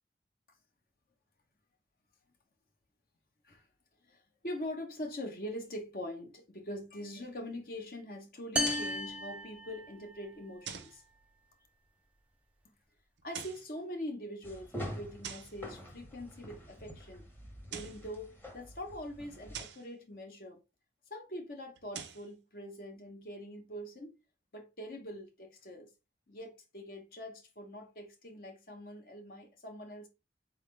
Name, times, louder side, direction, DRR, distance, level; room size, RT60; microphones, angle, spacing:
voice 1, 4.0-11.0 13.2-17.3 17.7-20.6 21.1-24.2 24.5-25.9 26.3-30.1, left 1 dB, 50° left, 0.9 m, -43 dB
sound 1, 8.6-10.3, left 1 dB, 10° right, 0.5 m, -34 dB
sound 2, 8.6-9.0 10.7-11.0 13.2-13.7 15.2-15.6 17.5-18.1 19.5-19.9 21.8-22.3, right 7 dB, 85° right, 0.7 m, -44 dB
sound 3, 14.4-19.6, equal, 10° left, 0.9 m, -46 dB
4.1 x 3.7 x 3.3 m
head